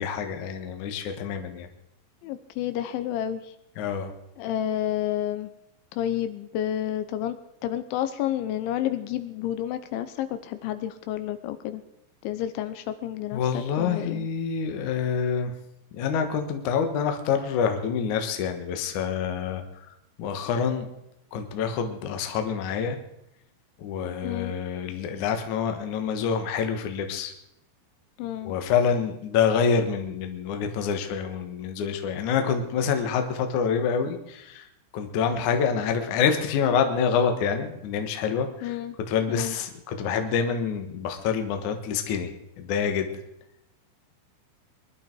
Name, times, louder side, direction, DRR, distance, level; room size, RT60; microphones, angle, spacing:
voice 1, 0.0-1.7 3.8-4.1 13.3-15.5 15.9-19.9 20.2-20.9 21.3-23.0 23.8-27.3 28.4-34.7 34.9-38.8 39.1-43.1, left 6 dB, 65° left, 6 dB, 2.0 m, -27 dB
voice 2, 2.2-3.4 4.4-5.5 5.9-7.4 7.6-11.8 12.2-14.3 24.2-24.5 28.2-28.5 38.6-39.0 39.3-39.6, left 11 dB, 80° left, 10 dB, 3.1 m, -30 dB
22.5 x 11.5 x 4.6 m, 0.82 s
omnidirectional pair, 5.6 m